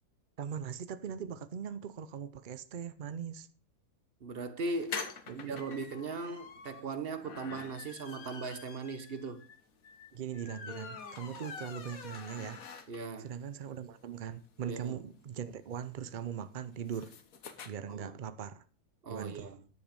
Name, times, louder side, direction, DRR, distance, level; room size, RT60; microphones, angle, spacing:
voice 1, 0.4-3.5 5.3-5.6 10.1-12.7 13.2-17.2 17.7-18.6 19.1-19.5, right 8 dB, 70° right, 0.4 m, -40 dB
voice 2, 4.2-5.0 5.3-9.4 12.9-13.3 14.6-15.0 17.9-18.2 19.0-19.6, right 3 dB, 40° right, 1.1 m, -39 dB
sound 1, 4.7-13.2 13.6-13.7 14.0-14.1 14.3-17.7, left 5 dB, 65° left, 1.6 m, -46 dB
10.0 x 8.1 x 5.3 m
omnidirectional pair, 1.7 m